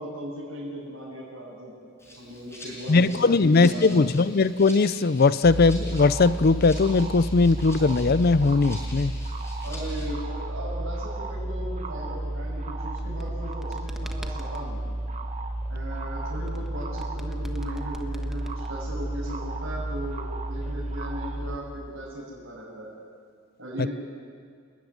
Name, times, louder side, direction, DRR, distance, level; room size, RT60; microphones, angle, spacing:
voice 1, 0.0-1.7 2.2-4.0 9.6-14.8 15.7-22.9 23.6-23.9, equal, 85° right, -8 dB, 7.6 m, -37 dB
Rattle (instrument), 2.0-10.1, left 1 dB, 15° left, 6.1 m, -45 dB
voice 2, 2.9-9.2 23.8-23.9, left 3 dB, 50° left, 16 dB, 0.5 m, -20 dB
sound 1, 5.4-21.6, right 1 dB, 35° right, 1.4 m, -32 dB
sound 2, 12.9-14.7 16.5-19.0, equal, ahead, 1.3 m, -45 dB
29.5 x 13.5 x 9.9 m, 2.1 s
head